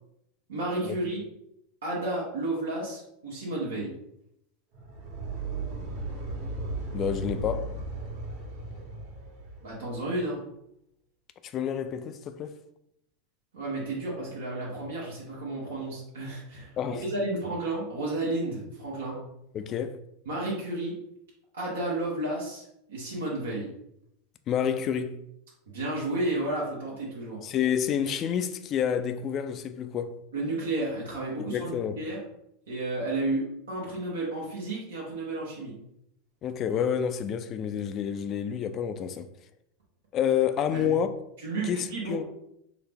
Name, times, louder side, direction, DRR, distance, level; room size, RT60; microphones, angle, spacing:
voice 1, 0.5-1.2 1.8-3.9 9.6-10.4 13.5-19.2 20.3-20.9 21.5-23.7 25.7-27.4 30.3-32.2 32.7-35.7 40.7-40.9 41.4-42.2, right 2 dB, 80° right, 0.9 m, -32 dB
sound 1, 4.7-9.9, right 2 dB, 60° right, 1.2 m, -36 dB
voice 2, 6.9-7.8 11.4-12.5 16.8-17.0 19.5-20.0 24.5-25.2 27.4-30.2 31.4-32.0 36.4-39.3 40.1-41.1 41.6-42.2, left 8 dB, 40° left, 0.3 m, -29 dB
3.8 x 2.0 x 3.4 m
hypercardioid pair, 95°, 0 cm